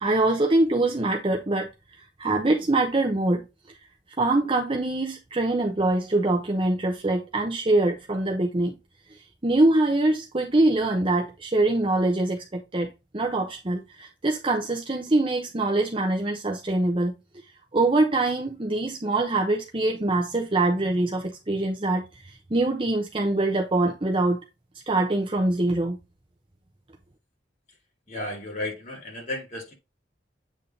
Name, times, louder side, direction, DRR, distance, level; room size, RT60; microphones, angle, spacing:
voice 1, 0.0-1.7 2.2-3.4 4.2-8.8 9.4-17.1 17.7-24.4 24.9-26.0, right 2 dB, 30° right, 0.9 m, -24 dB
voice 2, 28.1-29.7, left 1 dB, 45° left, 3.9 m, -33 dB
8.6 x 3.7 x 3.8 m
head